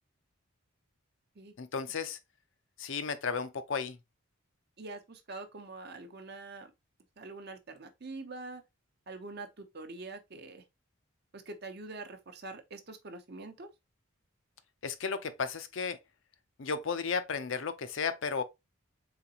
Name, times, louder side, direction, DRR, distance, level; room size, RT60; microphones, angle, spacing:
voice 1, 1.6-2.2 2.8-4.0 14.8-16.0 16.6-18.4, left 5 dB, 60° left, 0.5 m, -34 dB
voice 2, 4.8-6.7 7.2-8.6 9.1-10.6 11.3-13.7, right 3 dB, 50° right, 0.8 m, -44 dB
4.0 x 3.8 x 2.8 m
head